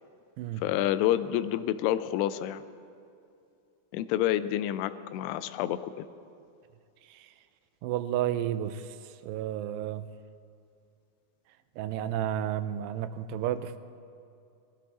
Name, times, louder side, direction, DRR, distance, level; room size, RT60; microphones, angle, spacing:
voice 1, 0.6-2.6 3.9-6.1, left 12 dB, 85° left, 13 dB, 2.6 m, -28 dB
voice 2, 7.8-8.9 9.2-10.1 11.8-13.8, right 11 dB, 90° right, 12 dB, 2.7 m, -31 dB
19.5 x 13.5 x 4.1 m, 2.5 s
omnidirectional pair, 4.7 m